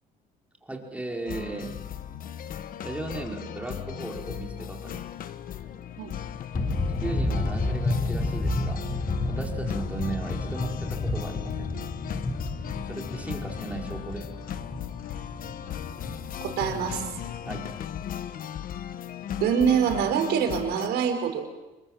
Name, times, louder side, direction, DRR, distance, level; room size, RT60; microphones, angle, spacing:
voice 1, 0.6-1.7 2.8-5.0 7.0-8.8 9.2-11.7 12.8-14.3 17.5-17.7, right 3 dB, 10° right, 0 dB, 4.9 m, -36 dB
sound 1, 1.3-20.9, left 10 dB, 55° left, 1.2 m, -37 dB
sound 2, 6.5-18.1, left 2 dB, 25° left, 4.5 m, -31 dB
voice 2, 16.4-17.1 19.4-21.5, right 7 dB, 80° right, 5 dB, 5.2 m, -25 dB
27.5 x 22.5 x 7.5 m, 1.1 s
cardioid pair, 110°, 17 cm